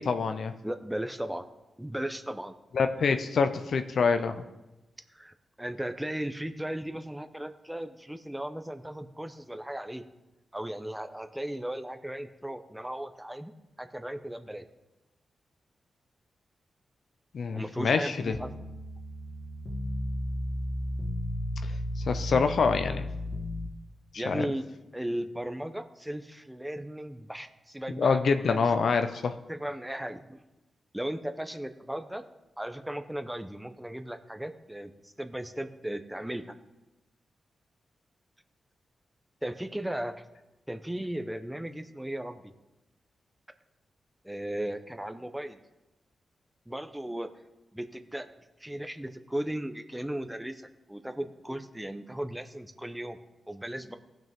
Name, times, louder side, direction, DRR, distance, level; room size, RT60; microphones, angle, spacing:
voice 1, 0.0-0.5 2.7-4.4 17.3-18.4 21.6-21.7 22.1-23.1 24.3-24.4 28.0-29.4, left 5 dB, 70° left, 9 dB, 0.6 m, -26 dB
voice 2, 0.6-1.4 1.8-2.5 5.1-10.0 10.5-13.5 13.8-14.6 17.6-18.7 24.2-24.6 24.9-28.2 28.5-28.6 29.5-30.4 30.9-32.2 32.6-36.5 39.4-40.2 40.7-42.5 44.2-45.6 46.7-47.3 47.7-48.3 48.6-53.2 53.5-54.0, right 1 dB, 10° right, 8 dB, 0.8 m, -36 dB
sound 1, 18.3-23.7, left 1 dB, 35° left, 1.8 m, -34 dB
15.5 x 6.0 x 3.6 m, 1.0 s
cardioid pair, 50°, 0 cm